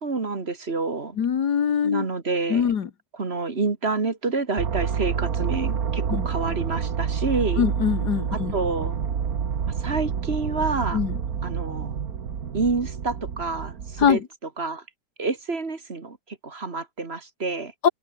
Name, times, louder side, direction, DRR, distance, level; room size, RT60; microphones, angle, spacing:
voice 1, 0.0-1.2 1.8-2.7 3.1-7.6 8.3-9.0 9.8-11.0 11.4-11.9 12.5-14.2 14.6-14.8 15.2-17.7, right 3 dB, 40° right, 2.1 m, -28 dB
voice 2, 1.2-2.1 2.5-2.9 6.1-6.3 7.6-8.5 10.9-11.2 14.0-14.3 17.8-17.9, left 7 dB, 85° left, 2.1 m, -22 dB
sound 1, 4.6-14.1, right 7 dB, 65° right, 1.9 m, -28 dB
open air
omnidirectional pair, 1.7 m